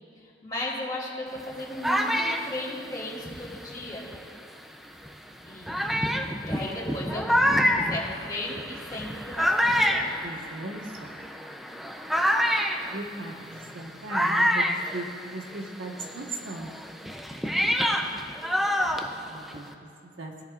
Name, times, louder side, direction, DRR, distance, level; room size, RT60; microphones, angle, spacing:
voice 1, 0.2-4.1 5.5-6.1 6.4-7.3 7.7-10.2 18.5-19.1, left 1 dB, 20° left, -6 dB, 2.9 m, -36 dB
sound 1, 1.4-4.4 5.1-5.2 5.7-15.7 16.0-19.7, equal, ahead, 0.5 m, -27 dB
voice 2, 10.2-11.2 12.9-16.7 19.3-19.7 20.0-20.3, right 2 dB, 80° right, 1 dB, 1.4 m, -38 dB
17.5 x 10.5 x 2.5 m, 2.7 s
head